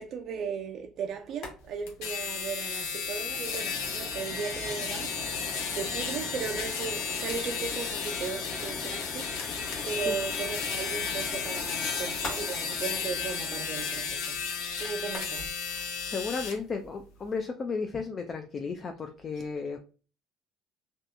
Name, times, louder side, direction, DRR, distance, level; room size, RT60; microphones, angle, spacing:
voice 1, 0.0-5.5 5.7-9.6 9.8-14.4 14.8-15.6 16.2-16.4 19.3-19.5, right 6 dB, 55° right, 0.3 m, -37 dB
sound 1, 1.3-1.6 1.8-1.9 2.3-2.4 2.8-15.5, left 3 dB, 60° left, 1.0 m, -42 dB
sound 2, 1.9-16.6, left 6 dB, 85° left, 0.6 m, -33 dB
voice 2, 9.8-10.2 14.8-15.1 15.7-19.8, left 4 dB, 35° left, 0.4 m, -35 dB
2.7 x 2.3 x 2.5 m
supercardioid pair, 95°, 0 cm